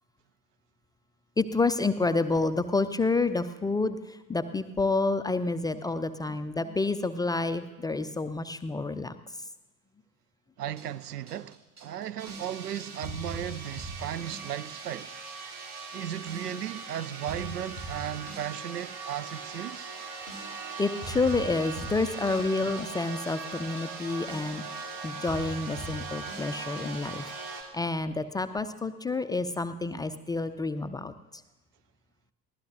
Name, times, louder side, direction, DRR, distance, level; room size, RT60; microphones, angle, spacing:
voice 1, 1.4-9.1 20.8-27.3 27.7-31.4, left 3 dB, 10° left, 0.4 m, -29 dB
voice 2, 10.6-15.1 15.9-19.9, right 10 dB, 80° right, 0.6 m, -36 dB
sound 1, 10.7-27.1, right 2 dB, 35° right, 4.5 m, -44 dB
sound 2, 12.2-27.6, right 4 dB, 55° right, 3.0 m, -40 dB
23.0 x 17.0 x 2.6 m
figure-of-eight pair, 65°, 46 cm